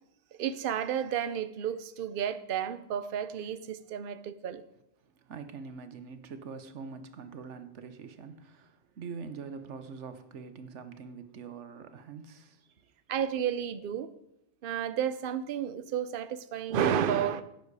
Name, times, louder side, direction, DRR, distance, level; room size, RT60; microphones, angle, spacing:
voice 1, 0.4-4.6 13.1-14.1 14.6-17.4, right 9 dB, 55° right, 0.8 m, -31 dB
voice 2, 5.0-12.9, right 5 dB, 80° right, 1.3 m, -44 dB
12.0 x 9.3 x 4.8 m
omnidirectional pair, 1.2 m